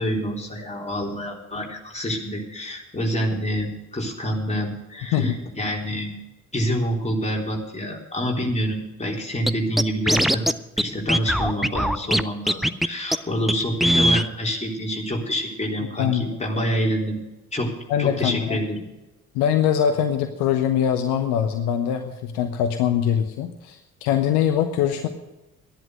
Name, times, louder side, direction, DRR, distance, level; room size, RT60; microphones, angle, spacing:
voice 1, 0.0-6.1 6.5-10.5 10.8-17.2 17.5-17.7 18.0-18.8, equal, 15° left, -2 dB, 3.8 m, -27 dB
Scratching (performance technique), 9.5-9.6 9.8-10.5 10.8-10.9 11.1-12.2 12.5-12.9 13.1-13.2 13.5-13.6 13.8-14.3, equal, ahead, 0.4 m, -20 dB
voice 2, 16.0-16.4 17.9-18.6 19.3-25.1, left 9 dB, 60° left, 7 dB, 1.0 m, -22 dB
13.0 x 11.0 x 6.5 m, 1.0 s
figure-of-eight pair, 45°, 43 cm